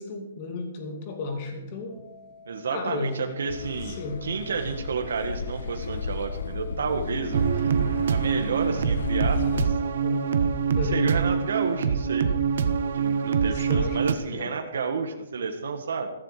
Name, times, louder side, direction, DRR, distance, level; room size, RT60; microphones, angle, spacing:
voice 1, 0.0-2.0 2.7-3.2 4.0-4.2 10.0-10.3 10.7-11.0 13.7-14.0 14.3-14.5, left 4 dB, 30° left, 3 dB, 2.7 m, -33 dB
sound 1, 1.9-10.5, left 4 dB, 15° right, 2.5 m, -50 dB
voice 2, 2.5-7.8 8.1-9.8 10.8-12.3 12.9-16.1, right 5 dB, 80° right, 5 dB, 1.8 m, -31 dB
Car passing by / Accelerating revving vroom, 3.5-9.7, left 5 dB, 65° left, 1.0 m, -34 dB
sound 2, 7.3-14.1, right 6 dB, 55° right, 1.2 m, -25 dB
15.5 x 14.5 x 5.0 m, 0.92 s
hypercardioid pair, 180°, 0 cm